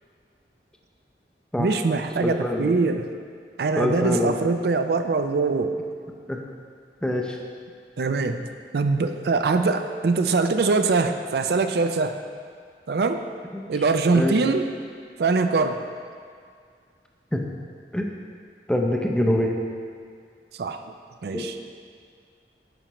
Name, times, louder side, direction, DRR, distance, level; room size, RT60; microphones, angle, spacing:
voice 1, 1.6-3.1 3.6-5.7 8.0-8.5 8.7-12.2 12.9-13.2 13.7-14.6 15.2-15.8 20.5-20.8 21.2-21.6, right 4 dB, 60° right, 7 dB, 0.4 m, -23 dB
voice 2, 2.2-2.8 3.8-4.4 6.3-6.4 7.0-7.4 13.5-13.6 14.1-14.4 17.3-17.4 17.9-18.1 18.7-19.6 21.3-21.5, left 1 dB, 5° left, 1 dB, 0.5 m, -24 dB
9.1 x 5.7 x 3.0 m, 2.1 s
head